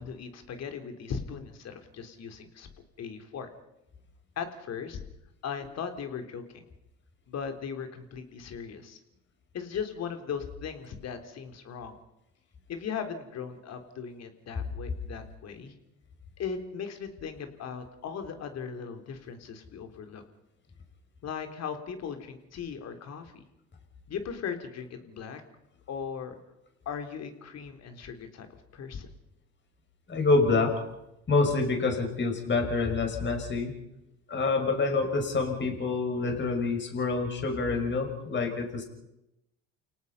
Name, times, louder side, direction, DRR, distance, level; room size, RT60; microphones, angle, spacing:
voice 1, 0.0-2.7 3.0-3.5 4.4-5.0 5.4-6.7 7.3-9.0 9.5-12.0 12.7-15.7 16.4-20.2 21.2-23.4 24.1-25.4 25.9-26.4 26.9-28.5 28.7-29.1, left 6 dB, 50° left, 7 dB, 3.6 m, -38 dB
voice 2, 30.1-30.8 31.3-33.7 34.3-38.8, left 3 dB, 35° left, 3 dB, 6.2 m, -27 dB
29.5 x 18.0 x 5.7 m, 0.88 s
supercardioid pair, 85°, 33 cm